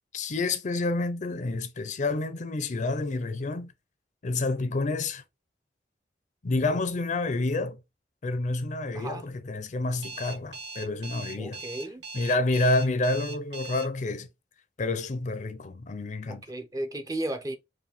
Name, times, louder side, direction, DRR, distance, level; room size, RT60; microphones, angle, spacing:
voice 1, 0.1-3.7 4.2-5.2 6.4-7.8 8.2-11.6 12.1-14.3 14.8-16.4, left 2 dB, 45° left, 0.5 m, -29 dB
voice 2, 8.9-9.3 11.4-12.1 16.3-17.6, right 1 dB, 20° right, 0.5 m, -34 dB
Alarm, 10.0-13.8, right 3 dB, 85° right, 2.2 m, -40 dB
4.7 x 2.2 x 3.3 m
head